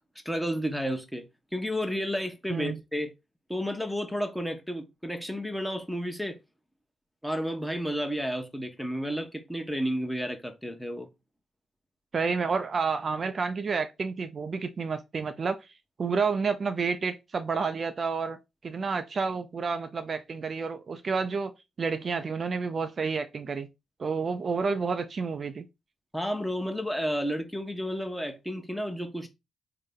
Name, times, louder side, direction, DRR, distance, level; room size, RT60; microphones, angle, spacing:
voice 1, 0.2-1.3 1.5-3.1 3.5-6.4 7.2-11.1 26.1-29.3, equal, ahead, 0.9 m, -31 dB
voice 2, 2.5-2.8 12.1-15.7 16.0-21.5 21.8-23.7 24.0-25.7, right 5 dB, 50° right, 0.4 m, -30 dB
3.8 x 2.1 x 3.6 m
hypercardioid pair, 40°, 0 cm